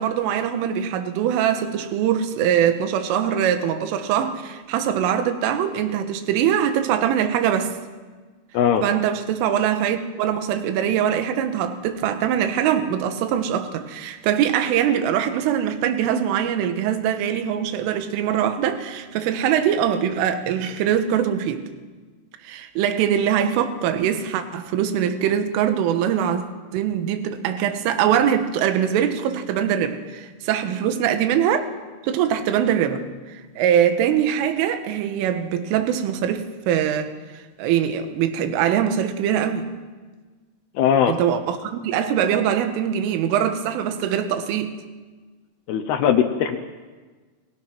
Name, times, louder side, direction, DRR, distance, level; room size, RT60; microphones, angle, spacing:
voice 1, 0.0-7.8 8.8-21.6 22.4-26.5 26.7-31.7 32.0-39.7 41.1-44.8, right 9 dB, 75° right, 8 dB, 3.9 m, -22 dB
voice 2, 40.8-41.1 45.7-46.6, left 9 dB, 80° left, 7 dB, 2.3 m, -19 dB
29.5 x 20.5 x 6.1 m, 1.4 s
omnidirectional pair, 5.9 m